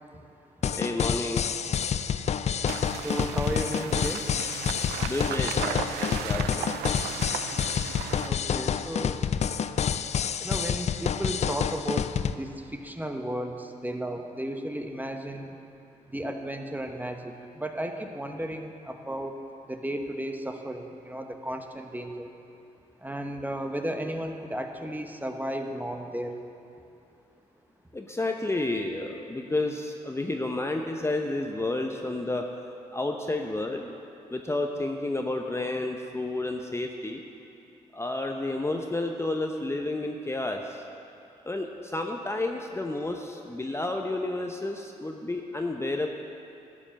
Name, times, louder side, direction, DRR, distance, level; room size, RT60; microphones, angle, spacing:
sound 1, 0.6-12.3, left 8 dB, 45° left, 0.4 m, -28 dB
voice 1, 0.8-1.5 5.0-6.7 27.9-32.5 32.9-34.0 34.3-37.2 37.9-40.8 41.4-46.1, left 2 dB, 15° left, 3 dB, 0.8 m, -31 dB
sound 2, 2.7-8.3, right 10 dB, 85° right, 0.4 m, -36 dB
voice 2, 2.9-4.3 8.2-9.2 10.4-15.6 16.1-22.3 23.0-26.3, right 1 dB, 10° right, 4 dB, 1.0 m, -34 dB
11.0 x 5.4 x 7.6 m, 2.6 s
hypercardioid pair, 45°, 16 cm